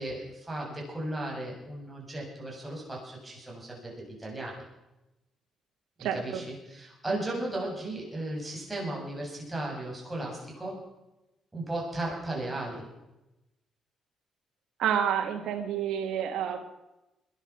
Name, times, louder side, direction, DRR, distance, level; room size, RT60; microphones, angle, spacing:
voice 1, 0.0-4.6 6.0-10.8 11.5-12.8, right 1 dB, 15° right, -2 dB, 7.6 m, -36 dB
voice 2, 6.0-6.4 14.8-16.6, right 9 dB, 80° right, 4 dB, 1.7 m, -29 dB
21.5 x 11.0 x 6.0 m, 0.96 s
cardioid pair, 90°, 0 cm